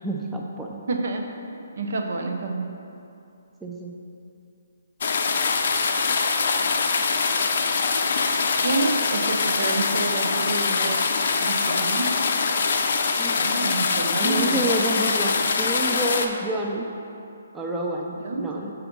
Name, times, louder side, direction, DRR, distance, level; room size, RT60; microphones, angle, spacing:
voice 1, 0.0-0.8 3.6-3.9 13.2-13.4 14.1-16.9 17.5-18.7, right 1 dB, 10° right, -2 dB, 0.5 m, -28 dB
voice 2, 0.9-2.7 8.6-11.0 11.4-12.1 13.4-14.7 18.2-18.7, right 3 dB, 60° right, 3 dB, 0.7 m, -28 dB
sound 1, 5.0-16.3, left 4 dB, 55° left, 0.5 m, -23 dB
5.7 x 4.0 x 5.3 m, 2.6 s
figure-of-eight pair, 140°, 0 cm